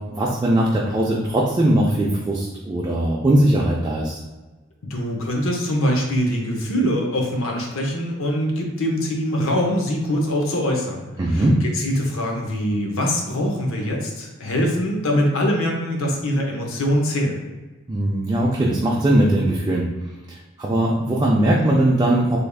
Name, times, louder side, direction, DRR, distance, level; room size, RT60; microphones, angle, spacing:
voice 1, 0.1-4.2 11.2-11.5 17.9-19.9 20.3-22.4, right 1 dB, 20° right, -3 dB, 0.4 m, -20 dB
voice 2, 4.9-11.1 11.3-17.4, equal, 70° left, 1 dB, 0.7 m, -23 dB
3.4 x 3.4 x 2.3 m, 1.2 s
head